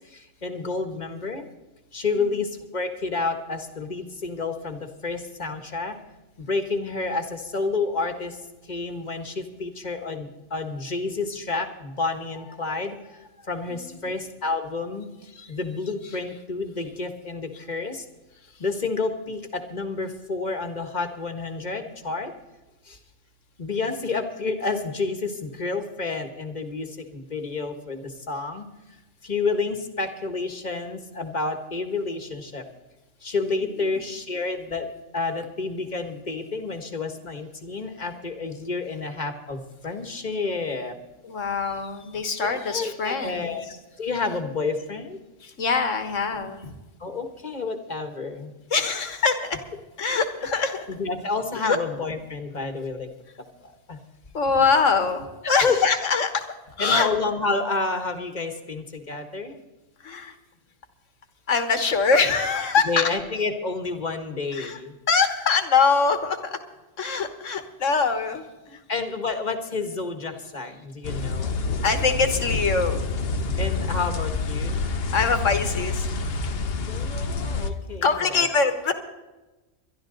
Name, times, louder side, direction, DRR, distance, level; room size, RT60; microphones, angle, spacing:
voice 1, 0.1-1.4 1.9-5.9 6.4-8.4 8.7-12.9 13.5-15.1 15.5-18.0 18.6-22.3 22.9-23.0 23.6-28.6 29.2-32.6 33.2-34.8 35.1-40.9 42.4-43.6 44.0-45.2 47.0-48.5 50.4-50.5 50.9-53.1 53.9-54.0 55.4-55.9 56.8-59.6 62.5-64.9 68.9-71.7 73.6-74.8 76.9-78.5, left 3 dB, 35° left, 7 dB, 1.5 m, -29 dB
voice 2, 13.7-14.1 15.4-15.5 33.5-33.6 33.9-34.0 41.2-43.6 45.4-46.8 48.7-49.6 50.0-50.9 51.6-51.8 54.3-56.4 56.8-57.1 60.0-60.4 61.5-63.0 64.5-64.8 65.1-66.6 67.0-68.8 71.8-73.0 75.1-76.1 78.0-78.9, left 5 dB, 70° left, 8 dB, 1.8 m, -23 dB
sound 1, 71.0-77.7, left 3 dB, 55° left, 1.0 m, -27 dB
22.0 x 12.0 x 3.9 m, 1.1 s
omnidirectional pair, 1.3 m